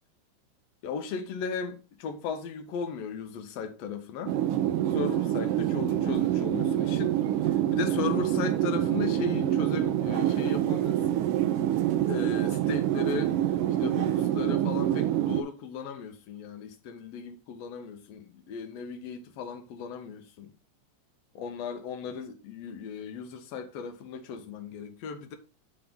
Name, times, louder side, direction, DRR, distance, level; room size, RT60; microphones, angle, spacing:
voice 1, 0.8-4.4 4.9-7.1 7.4-11.2 12.0-13.4 13.8-20.5 21.4-25.4, left 6 dB, 65° left, 1.9 m, -36 dB
sound 1, 4.3-15.4, right 12 dB, 90° right, 1.3 m, -26 dB
8.8 x 3.8 x 3.6 m
omnidirectional pair, 3.3 m